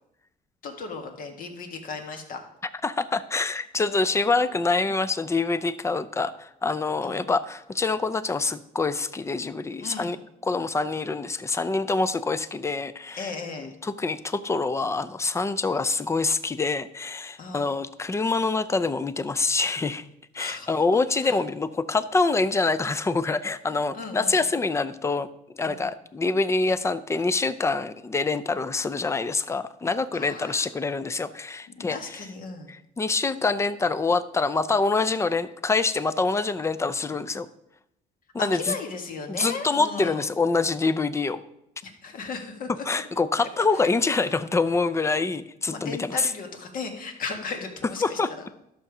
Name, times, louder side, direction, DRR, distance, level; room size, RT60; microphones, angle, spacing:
voice 1, 0.6-2.4 7.0-7.3 9.8-10.2 13.1-13.7 17.4-17.7 20.4-20.7 21.2-21.3 23.9-24.4 25.6-25.8 30.1-30.7 31.8-32.7 38.4-40.3 41.8-43.0 43.8-43.9 45.7-48.5, left 4 dB, 55° left, 4 dB, 1.9 m, -36 dB
voice 2, 2.8-10.2 10.4-13.3 13.6-20.1 20.3-25.3 25.6-32.2 32.7-37.5 38.3-38.8 39.3-41.4 42.9-46.3 48.0-48.3, left 3 dB, 15° left, 14 dB, 0.5 m, -25 dB
12.0 x 6.6 x 4.9 m, 0.82 s
cardioid pair, 110°, 17 cm